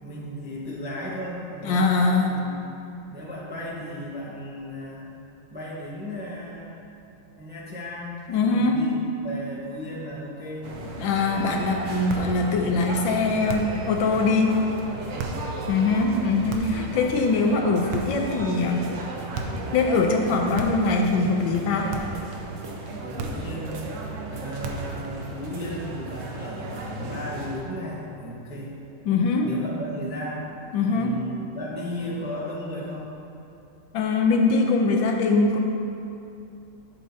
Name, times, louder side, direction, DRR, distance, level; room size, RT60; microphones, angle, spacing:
voice 1, 0.0-2.6 3.1-5.1 5.5-6.8 7.3-10.7 15.1-15.6 23.0-23.9 24.3-28.7 29.4-30.5 30.8-33.1, left 1 dB, 10° right, -5 dB, 0.5 m, -35 dB
voice 2, 1.6-2.4 8.3-8.8 11.0-14.6 15.7-18.9 19.7-21.9 29.1-29.5 30.7-31.2 33.9-35.6, left 3 dB, 70° left, 2 dB, 1.3 m, -22 dB
sound 1, 10.6-27.6, right 3 dB, 65° right, 0.8 m, -35 dB
sound 2, 12.1-12.4 13.5-13.9 15.2-15.5 16.5-16.9 17.9-18.3 19.3-19.7 20.6-21.0 21.9-22.3 23.2-23.6 24.6-25.0, right 3 dB, 85° right, 1.7 m, -33 dB
11.5 x 7.2 x 2.8 m, 2.7 s
omnidirectional pair, 2.3 m